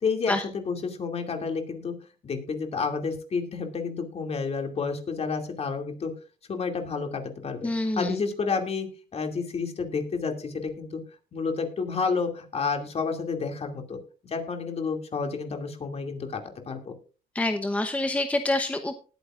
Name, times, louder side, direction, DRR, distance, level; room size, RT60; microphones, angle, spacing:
voice 1, 0.0-1.9 2.2-6.1 6.5-7.7 8.0-8.9 9.1-11.0 11.3-14.0 14.2-16.4 16.7-16.9, left 5 dB, 35° left, 4 dB, 2.5 m, -30 dB
voice 2, 7.6-8.2 17.3-19.0, left 2 dB, 10° left, 7 dB, 0.8 m, -26 dB
19.5 x 9.2 x 2.5 m, 0.36 s
cardioid pair, 110°, 17 cm